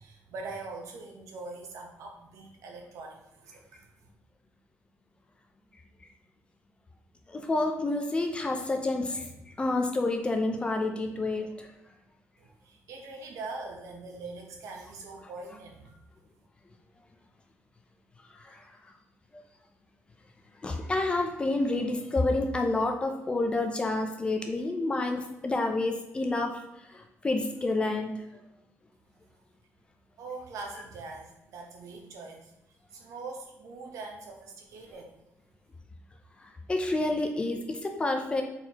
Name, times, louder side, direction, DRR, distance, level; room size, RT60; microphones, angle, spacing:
voice 1, 0.0-3.9 12.4-15.9 30.2-32.5 32.9-35.1, right 3 dB, 75° right, 1 dB, 0.9 m, -42 dB
voice 2, 7.3-11.7 18.3-18.6 19.3-19.4 20.6-26.5 26.9-28.2 36.4-38.4, left 2 dB, 20° left, 4 dB, 0.4 m, -29 dB
4.4 x 4.1 x 2.8 m, 0.90 s
cardioid pair, 165°, 5 cm